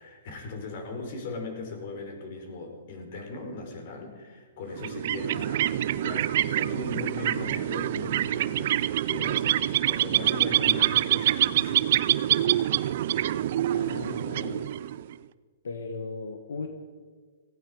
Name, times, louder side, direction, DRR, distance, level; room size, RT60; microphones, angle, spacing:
voice 1, 0.0-11.9, left 3 dB, 50° left, 4 dB, 4.1 m, -39 dB
sound 1, 4.7-15.1, right 12 dB, 55° right, 0.5 m, -26 dB
voice 2, 13.7-14.7 15.6-16.7, left 4 dB, 85° left, 6 dB, 1.5 m, -37 dB
18.5 x 15.0 x 5.0 m, 1.5 s
hypercardioid pair, 150°, 0 cm